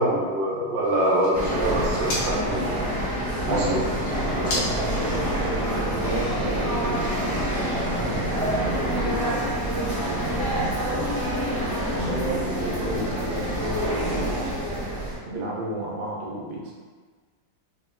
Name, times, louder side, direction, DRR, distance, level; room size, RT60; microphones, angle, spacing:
voice 1, 0.0-3.0 3.4-3.8, right 1 dB, 55° right, -6 dB, 0.9 m, -24 dB
sound 1, 0.8-5.9, left 1 dB, 75° left, 1.6 m, -36 dB
sound 2, 1.3-15.2, right 1 dB, 30° right, 0.4 m, -27 dB
sound 3, 3.4-8.4, left 1 dB, 50° left, 1.3 m, -38 dB
voice 2, 3.5-7.0 7.8-11.2 11.9-14.3 15.2-16.7, right 1 dB, 85° right, -3 dB, 1.4 m, -32 dB
4.2 x 2.1 x 2.2 m, 1.5 s
omnidirectional pair, 2.0 m